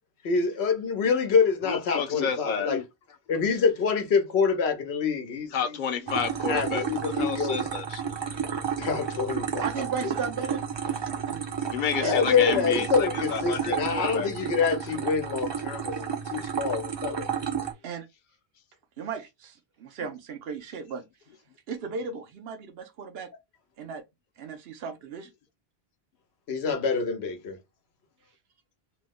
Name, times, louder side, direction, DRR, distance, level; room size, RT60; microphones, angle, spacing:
voice 1, 0.2-2.8 3.3-5.8 6.1-6.2 6.5-7.6 8.8-9.6 12.0-17.4 26.5-27.6, left 5 dB, 90° left, 1.0 m, -26 dB
voice 2, 1.6-2.8 5.5-8.1 11.7-14.3 20.0-20.1, left 7 dB, 55° left, 0.7 m, -31 dB
sound 1, 6.1-17.7, right 7 dB, 35° right, 0.5 m, -32 dB
voice 3, 9.6-11.5 12.0-12.2 17.8-18.1 19.0-21.0 21.7-23.3 23.8-24.0 24.4-25.3, right 6 dB, 75° right, 0.9 m, -36 dB
3.0 x 2.0 x 3.5 m
omnidirectional pair, 1.0 m